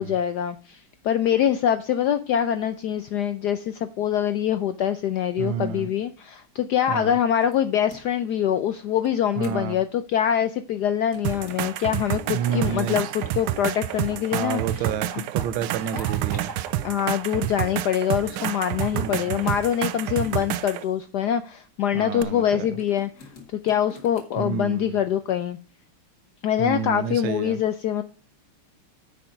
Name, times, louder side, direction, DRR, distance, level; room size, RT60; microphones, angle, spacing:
voice 1, 0.0-14.8 16.8-23.3 23.6-25.6 26.4-28.0, left 9 dB, 80° left, 0.9 m, -24 dB
voice 2, 5.4-5.9 6.9-7.2 9.4-9.8 12.3-13.1 14.3-16.5 18.9-19.5 21.9-22.7 24.4-25.0 26.6-27.6, right 8 dB, 70° right, 1.5 m, -29 dB
sound 1, 7.4-8.3 9.0-9.8 11.0-12.4 13.7-13.9 15.0-16.5 17.4-17.5 19.1-19.2 19.6-21.4 22.8-24.4, left 4 dB, 45° left, 2.3 m, -48 dB
sound 2, 11.2-20.8 22.2-22.3, right 13 dB, 90° right, 1.6 m, -29 dB
sound 3, 12.3-19.8, right 1 dB, 10° right, 1.3 m, -42 dB
9.6 x 5.7 x 5.1 m
omnidirectional pair, 2.4 m